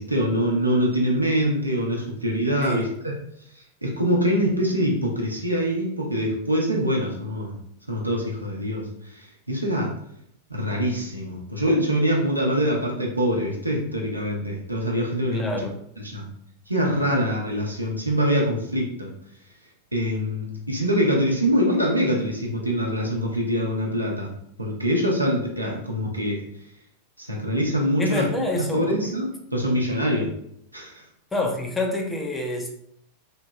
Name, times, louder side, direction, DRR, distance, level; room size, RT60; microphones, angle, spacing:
voice 1, 0.0-2.9 3.8-7.6 7.9-8.9 9.1-9.9 10.5-15.5 16.1-16.2 16.7-19.1 19.9-24.3 24.6-26.5 27.2-30.3 30.7-30.9, equal, 85° right, -1 dB, 0.6 m, -24 dB
voice 2, 2.6-2.9 15.3-15.8 28.0-29.2 31.3-32.7, left 2 dB, 10° left, 1 dB, 0.5 m, -27 dB
2.9 x 2.8 x 2.2 m, 0.71 s
figure-of-eight pair, 90°, 0 cm